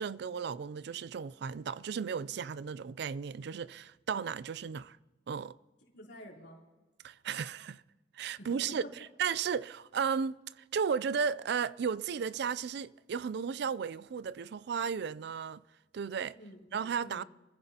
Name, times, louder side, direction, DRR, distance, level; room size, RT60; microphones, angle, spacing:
voice 1, 0.0-5.0 5.3-5.6 7.0-7.8 8.1-8.8 9.2-15.6 15.9-16.4 16.7-17.2, right 6 dB, 60° right, 0.4 m, -34 dB
voice 2, 5.9-6.6 8.4-8.9 16.3-17.3, left 1 dB, 70° left, 3.3 m, -49 dB
26.5 x 14.5 x 2.9 m
head